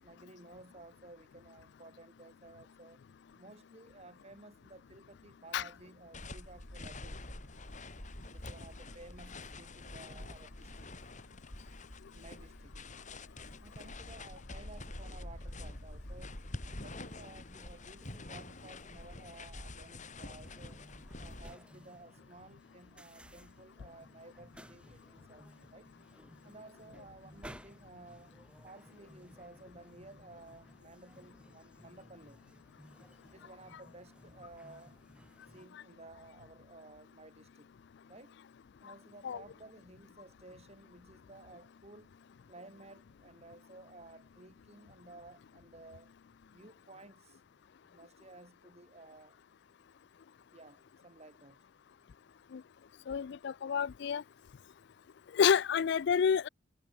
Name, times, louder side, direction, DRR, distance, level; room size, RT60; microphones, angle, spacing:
voice 1, 0.0-3.0 3.3-7.2 8.3-10.9 12.1-12.8 13.6-16.4 16.6-20.8 21.2-25.9 26.4-28.3 28.6-32.4 33.3-35.0 35.5-37.7 38.1-38.4 38.8-42.1 42.5-46.1 46.5-47.4 47.9-49.4 50.5-51.7, right 2 dB, 35° right, 5.9 m, -55 dB
sound 1, 6.1-21.5, left 2 dB, 40° left, 4.1 m, -46 dB
sound 2, 20.4-35.7, equal, 5° right, 7.4 m, -57 dB
voice 2, 53.1-54.2 55.3-56.5, left 7 dB, 65° left, 0.4 m, -29 dB
head